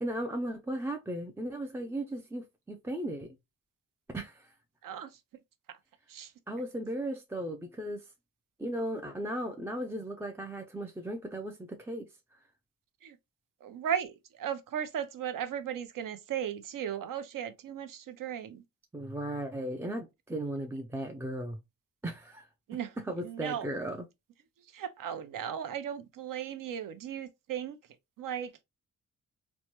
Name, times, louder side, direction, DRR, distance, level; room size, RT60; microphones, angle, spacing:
voice 1, 0.0-3.3 4.1-4.5 6.5-8.0 8.6-12.1 18.9-21.6 22.0-22.5 23.1-24.1, right 1 dB, 10° right, 0.3 m, -36 dB
voice 2, 13.6-18.6 22.7-23.7 24.7-27.8 28.2-28.6, right 9 dB, 70° right, 0.6 m, -36 dB
3.1 x 2.2 x 2.9 m
cardioid pair, 110°, 34 cm